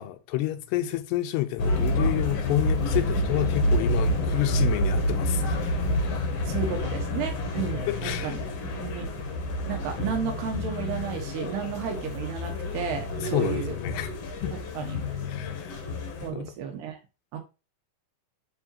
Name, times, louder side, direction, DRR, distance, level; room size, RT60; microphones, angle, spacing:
voice 1, 0.0-5.8 7.9-8.4 13.2-14.1 14.4-14.5 15.3-15.8 16.3-16.5, left 16 dB, 85° left, 2.8 m, -29 dB
sound 1, 1.6-16.3, left 1 dB, 60° left, 1.7 m, -28 dB
voice 2, 6.5-8.4 8.8-9.1 9.7-13.8 14.5-15.0 16.2-17.0 17.3-17.4, right 7 dB, 75° right, 3.3 m, -33 dB
9.8 x 4.0 x 2.7 m
omnidirectional pair, 4.7 m